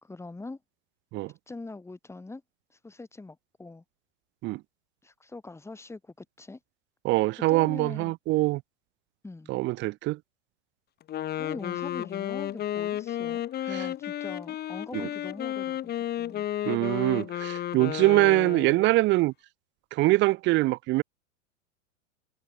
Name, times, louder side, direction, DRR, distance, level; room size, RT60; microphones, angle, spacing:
voice 1, 0.0-0.6 1.5-2.4 2.7-3.8 5.0-6.6 7.5-8.1 9.2-9.5 11.3-16.5, left 3 dB, 5° left, 2.4 m, -42 dB
voice 2, 7.0-8.6 9.5-10.2 14.9-15.1 16.6-19.3 19.9-21.0, right 20 dB, 30° right, 0.5 m, -24 dB
Wind instrument woodwind instrument, 11.0-18.9, left 12 dB, 25° left, 1.1 m, -33 dB
hypercardioid pair, 120°, 38 cm